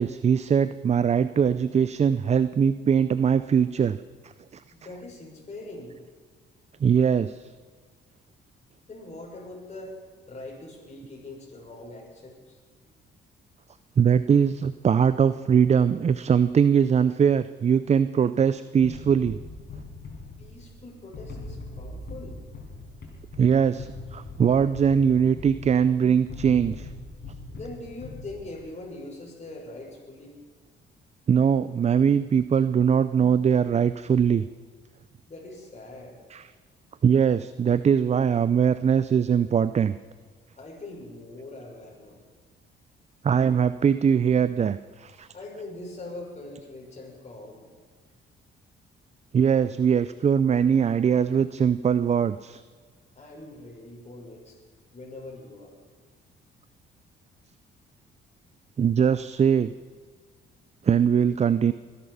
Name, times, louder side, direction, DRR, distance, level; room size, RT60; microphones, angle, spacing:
voice 1, 0.0-4.0 4.2-4.6 6.8-7.5 14.0-19.4 23.4-26.9 31.3-34.4 36.3-36.5 37.0-39.9 43.2-45.3 49.3-52.6 58.8-59.7 60.8-61.7, right 7 dB, 35° right, 13 dB, 0.5 m, -21 dB
voice 2, 4.7-6.0 8.9-10.0 10.3-12.6 20.4-22.4 27.5-30.3 35.3-36.2 40.6-42.2 45.3-47.7 53.1-54.5 54.9-55.7, left 2 dB, 35° left, -2 dB, 5.9 m, -42 dB
sound 1, 18.8-28.7, left 2 dB, 55° left, 5.4 m, -41 dB
23.0 x 11.0 x 5.6 m, 1.5 s
cardioid pair, 90°, 20 cm